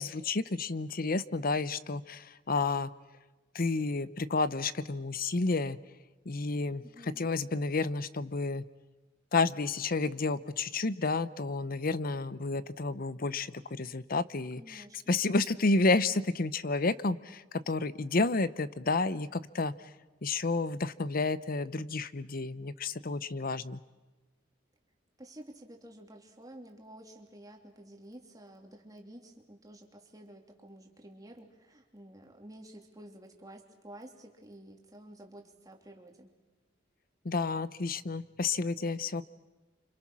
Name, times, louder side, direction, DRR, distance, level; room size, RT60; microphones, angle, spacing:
voice 1, 0.0-2.9 3.5-5.8 6.3-8.7 9.3-19.7 20.2-23.8 37.2-39.2, left 3 dB, 50° left, 16 dB, 0.8 m, -31 dB
voice 2, 6.8-7.3 14.6-15.2 25.2-36.3, right 1 dB, 20° right, 2 dB, 3.1 m, -51 dB
29.0 x 26.5 x 6.2 m, 1.2 s
head